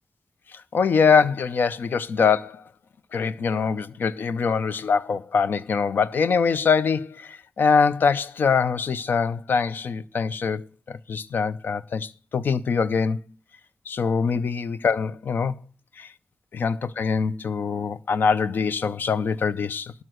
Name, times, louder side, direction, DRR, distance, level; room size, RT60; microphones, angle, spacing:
voice 1, 0.5-2.6 3.1-13.2 13.9-15.6 16.0-16.1 16.5-19.9, left 5 dB, 85° left, 0.6 m, -23 dB
12.5 x 5.5 x 7.8 m
wide cardioid pair, 80°, 3 cm